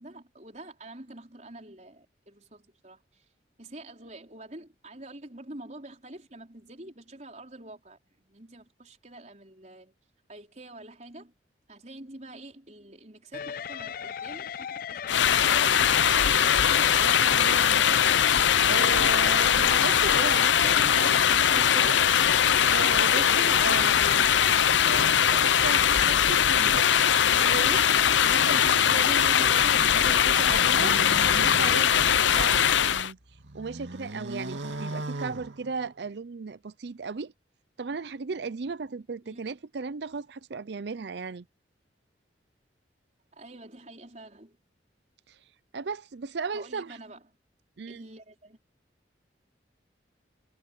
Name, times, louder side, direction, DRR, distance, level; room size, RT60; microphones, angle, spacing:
voice 1, 0.0-3.3 3.6-9.9 10.3-11.3 11.7-15.4 39.2-39.4 43.3-44.6 46.5-47.2 47.9-48.6, right 1 dB, 40° right, 4.8 m, -47 dB
sound 1, 13.3-24.2, left 7 dB, 50° left, 0.4 m, -36 dB
sound 2, 15.1-33.1, left 8 dB, 85° left, 0.7 m, -21 dB
voice 2, 16.9-17.9 18.6-22.0 22.7-24.4 24.8-26.9 27.2-27.9 28.2-31.0 31.3-33.2 33.5-37.3 37.8-41.5 45.3-45.4 45.7-47.0 47.8-48.0, right 4 dB, 65° right, 0.5 m, -36 dB
sound 3, 30.1-32.8 33.2-36.1, right 2 dB, 80° right, 2.4 m, -38 dB
head